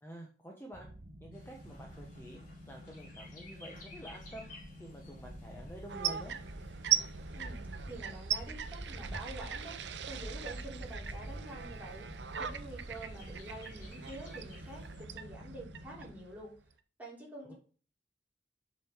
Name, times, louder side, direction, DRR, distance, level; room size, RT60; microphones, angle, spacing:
voice 1, 0.0-0.9 1.2-2.4 2.7-4.5 4.8-6.3 17.4-17.5, equal, 15° left, -1 dB, 1.1 m, -49 dB
sound 1, 0.7-16.1, equal, 50° right, 1.0 m, -52 dB
Bird, 1.3-15.0, equal, 50° left, 2.7 m, -49 dB
sound 2, 5.9-16.7, right 9 dB, 85° right, 0.6 m, -39 dB
voice 2, 7.3-9.8 10.1-12.1 12.4-16.6 17.0-17.5, right 1 dB, 10° right, -5 dB, 3.1 m, -47 dB
7.5 x 5.2 x 3.6 m, 0.40 s
head